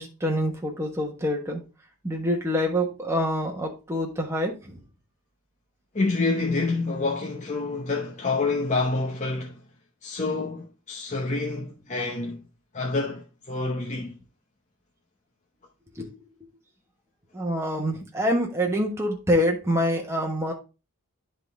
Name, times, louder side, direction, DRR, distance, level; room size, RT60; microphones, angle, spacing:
voice 1, 0.0-1.6 2.0-4.8 16.0-16.1 17.3-20.5, equal, 10° right, 1.3 m, -26 dB
voice 2, 5.9-9.6 10.0-12.4 12.7-14.1, left 3 dB, 30° left, 0.9 m, -27 dB
10.5 x 3.9 x 3.4 m
head